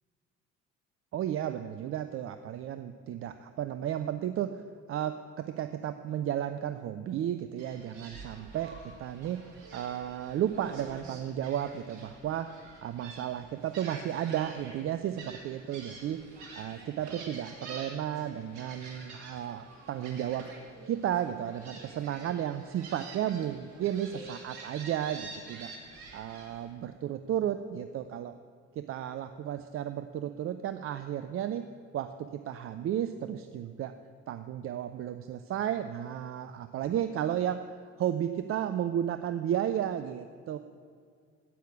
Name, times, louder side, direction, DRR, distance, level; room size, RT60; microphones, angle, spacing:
voice 1, 1.1-4.6 4.9-9.4 9.7-12.5 12.8-16.2 16.6-20.5 20.9-25.7 26.1-28.3 28.8-31.6 31.9-33.9 34.3-37.6 38.0-40.6, right 10 dB, 40° right, 10 dB, 0.5 m, -33 dB
Gull seagull, 7.6-26.7, right 3 dB, 65° right, 2.0 m, -48 dB
10.0 x 8.4 x 8.4 m, 2.1 s
figure-of-eight pair, 50°, 36 cm